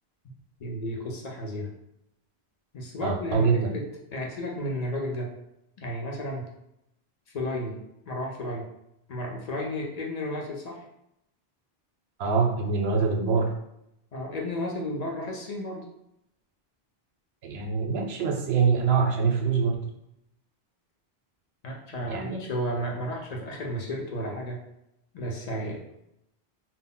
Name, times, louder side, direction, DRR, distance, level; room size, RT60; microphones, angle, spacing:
voice 1, 0.6-1.7 2.7-5.4 5.8-6.5 7.3-8.7 9.1-10.9 14.1-15.9 21.6-24.7 25.1-25.8, equal, 55° left, 0 dB, 0.5 m, -33 dB
voice 2, 3.0-3.7 12.2-13.5 17.4-19.7 22.1-22.4, right 5 dB, 80° right, 2 dB, 0.8 m, -24 dB
2.1 x 2.0 x 3.7 m, 0.81 s
omnidirectional pair, 1.1 m